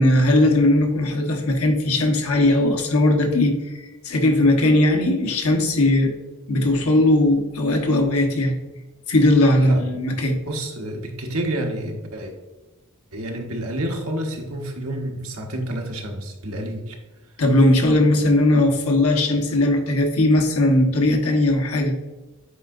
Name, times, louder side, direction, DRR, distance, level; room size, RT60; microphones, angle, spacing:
voice 1, 0.0-3.6 4.0-6.1 6.5-8.6 9.1-10.4 17.4-21.9, left 1 dB, 85° left, 3 dB, 1.2 m, -18 dB
voice 2, 9.6-10.0 10.4-12.3 13.1-17.0, right 1 dB, 80° right, 1 dB, 1.2 m, -29 dB
8.5 x 4.7 x 2.6 m, 1.1 s
head